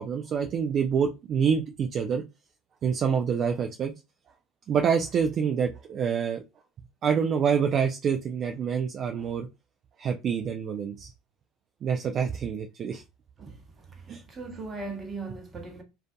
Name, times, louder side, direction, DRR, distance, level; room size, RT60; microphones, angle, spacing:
voice 1, 0.0-2.2 2.8-3.9 4.7-6.4 7.0-9.5 10.0-11.1 11.8-13.0 14.1-14.2, right 7 dB, 45° right, 0.3 m, -26 dB
voice 2, 13.9-15.8, right 3 dB, 25° right, 0.9 m, -39 dB
2.5 x 2.4 x 2.2 m
hypercardioid pair, 75°, 0 cm